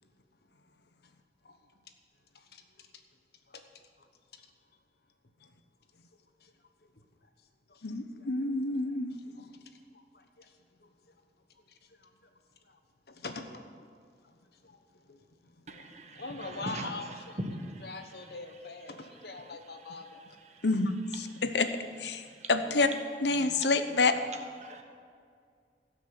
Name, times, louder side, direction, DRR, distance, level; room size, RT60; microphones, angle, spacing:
voice 1, 2.3-2.9 3.5-3.6 4.0-4.1 4.3-4.5 6.4-6.5 6.8-6.9 7.7-7.9 8.2-8.3 9.3-9.6 9.9-11.1 11.7-12.1 12.7-12.8 13.1-13.9 14.2-15.2 16.1-17.4 17.8-20.2 22.6-22.9, left 3 dB, 65° left, 6 dB, 1.1 m, -44 dB
voice 2, 7.8-9.2 20.6-21.7 22.0-22.9 23.2-24.2, left 3 dB, 80° left, 10 dB, 0.8 m, -28 dB
voice 3, 15.7-17.1 17.4-17.9 18.2-18.3 20.5-20.6 21.3-21.4 22.1-22.5 24.6-24.8, right 1 dB, 40° right, 4 dB, 1.2 m, -41 dB
16.5 x 6.2 x 7.9 m, 2.2 s
head